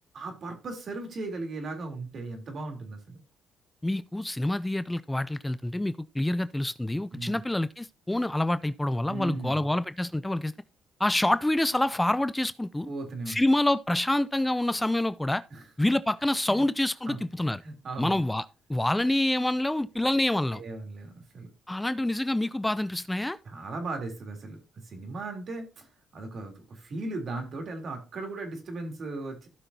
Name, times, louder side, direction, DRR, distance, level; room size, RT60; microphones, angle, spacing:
voice 1, 0.1-3.2 7.1-7.4 9.1-9.7 12.9-13.4 15.5-15.6 16.5-16.7 17.1-17.2 17.6-18.2 20.5-21.5 23.5-24.6 24.8-29.5, right 2 dB, 55° right, 3.4 m, -37 dB
voice 2, 3.8-10.5 11.0-12.9 13.3-15.4 15.8-17.6 18.0-20.6 21.7-23.4, left 1 dB, 10° left, 0.4 m, -27 dB
15.5 x 5.9 x 2.8 m
cardioid pair, 90°, 0 cm